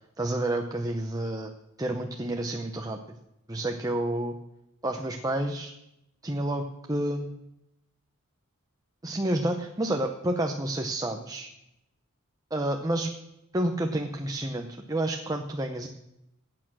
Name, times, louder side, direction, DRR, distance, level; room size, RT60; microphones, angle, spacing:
voice 1, 0.2-1.5 1.8-3.2 3.5-4.3 4.8-5.7 6.2-7.4 9.0-11.5 12.5-13.1 13.5-15.9, right 1 dB, 15° right, 3 dB, 0.8 m, -29 dB
21.5 x 8.8 x 6.2 m, 0.87 s
head